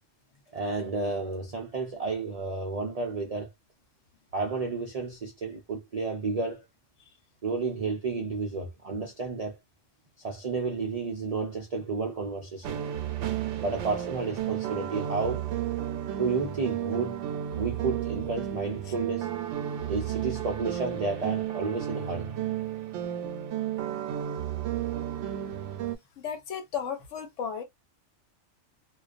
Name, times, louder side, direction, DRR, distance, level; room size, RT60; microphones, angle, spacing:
voice 1, 0.5-3.5 4.3-6.6 7.4-9.6 10.2-12.9 13.6-15.4 16.2-17.2 17.5-19.3 19.9-22.3, right 4 dB, 60° right, 0.4 m, -31 dB
sound 1, 12.6-26.0, right 11 dB, 75° right, 0.9 m, -33 dB
voice 2, 26.2-27.6, left 7 dB, 75° left, 1.1 m, -34 dB
2.3 x 2.3 x 2.4 m
omnidirectional pair, 1.3 m